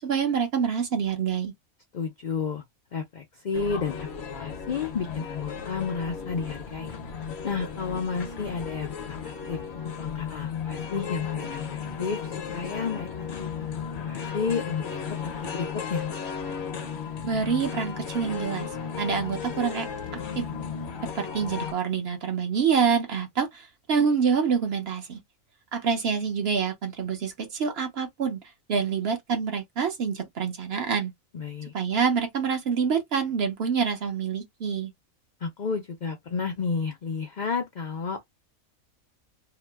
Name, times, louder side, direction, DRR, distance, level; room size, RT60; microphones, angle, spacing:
voice 1, 0.0-1.5 17.2-18.7 19.0-19.9 20.1-20.4 21.1-25.2 25.7-28.4 28.7-31.1 31.7-34.9, right 6 dB, 55° right, 0.9 m, -26 dB
voice 2, 1.9-2.6 2.9-7.0 7.4-9.6 10.0-13.1 13.7-16.0 31.3-31.7 35.4-38.2, left 5 dB, 75° left, 0.4 m, -32 dB
sound 1, 3.5-21.7, left 7 dB, 55° left, 0.9 m, -35 dB
2.9 x 2.0 x 3.2 m
omnidirectional pair, 1.4 m